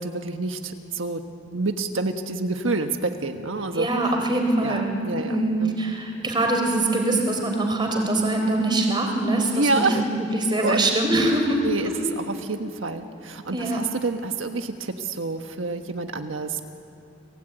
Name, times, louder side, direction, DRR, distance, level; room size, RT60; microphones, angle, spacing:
voice 1, 0.0-4.1 4.6-5.9 9.5-10.0 10.6-10.8 11.6-16.6, right 3 dB, 85° right, 5 dB, 1.4 m, -28 dB
voice 2, 3.8-9.9 10.2-11.6 13.5-13.8, right 2 dB, 25° right, 3 dB, 3.8 m, -23 dB
29.5 x 21.0 x 9.2 m, 2.8 s
head